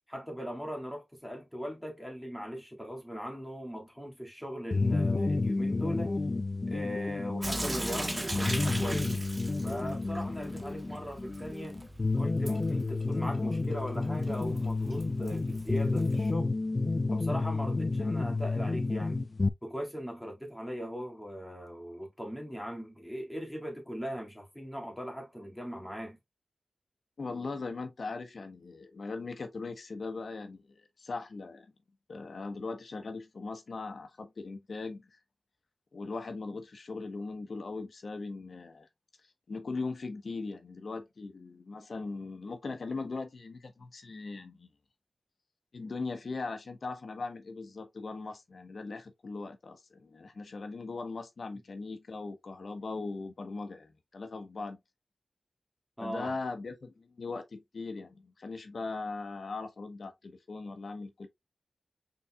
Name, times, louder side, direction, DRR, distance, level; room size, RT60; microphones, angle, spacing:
voice 1, 0.1-6.2 6.7-9.2 9.6-11.8 12.2-16.5 17.1-19.2 19.6-26.2 56.0-56.3, equal, ahead, 2.0 m, -39 dB
sound 1, 4.7-19.5, left 3 dB, 35° left, 0.4 m, -30 dB
Sink (filling or washing) / Drip, 7.4-16.3, right 1 dB, 25° right, 0.7 m, -40 dB
voice 2, 27.2-31.7 32.1-35.2 35.9-38.9 39.5-44.7 45.7-54.8 56.0-61.3, left 3 dB, 70° left, 1.0 m, -39 dB
5.4 x 3.9 x 2.2 m
wide cardioid pair, 75°, 0 cm